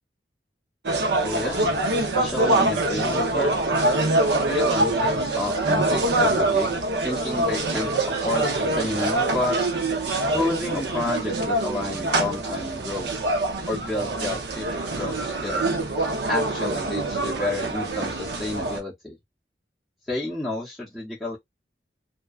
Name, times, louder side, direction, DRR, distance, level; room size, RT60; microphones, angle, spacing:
sound 1, 0.8-18.8, right 2 dB, 70° right, 0.6 m, -24 dB
voice 1, 1.2-3.5 4.4-9.6 10.3-13.1 13.6-15.8 16.3-19.2 20.1-21.4, left 2 dB, ahead, 0.7 m, -30 dB
2.6 x 2.3 x 2.3 m
head